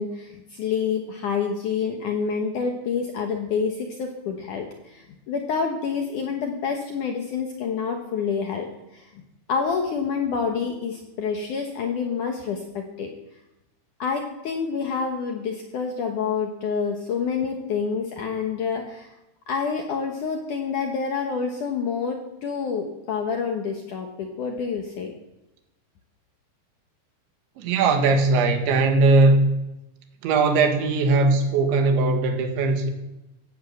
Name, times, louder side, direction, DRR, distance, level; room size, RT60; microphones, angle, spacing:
voice 1, 0.0-8.7 8.9-9.1 9.5-13.1 14.0-19.1 19.5-25.1, left 5 dB, 70° left, 3 dB, 2.0 m, -28 dB
voice 2, 27.6-29.5 30.2-32.9, right 3 dB, 85° right, 5 dB, 4.0 m, -19 dB
14.0 x 11.0 x 8.0 m, 0.94 s
omnidirectional pair, 5.2 m